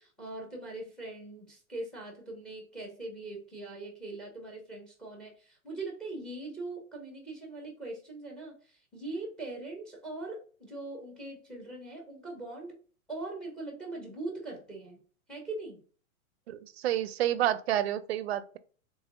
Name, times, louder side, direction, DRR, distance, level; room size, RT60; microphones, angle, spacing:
voice 1, 0.0-12.8 13.1-15.0 15.3-15.8, right 2 dB, ahead, 0.6 m, -41 dB
voice 2, 16.5-18.6, right 12 dB, 50° right, 0.4 m, -29 dB
3.5 x 3.4 x 2.4 m
hypercardioid pair, 150°, 42 cm